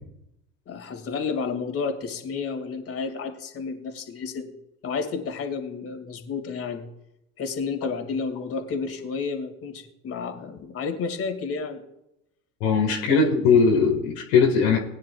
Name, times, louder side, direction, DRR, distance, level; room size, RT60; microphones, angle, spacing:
voice 1, 0.7-4.5 4.8-6.9 7.4-11.8 13.1-13.3, left 5 dB, 35° left, 5 dB, 2.2 m, -31 dB
voice 2, 12.6-14.8, left 5 dB, 65° left, 1 dB, 1.8 m, -19 dB
19.5 x 10.0 x 2.3 m, 0.84 s
hypercardioid pair, 75°, 41 cm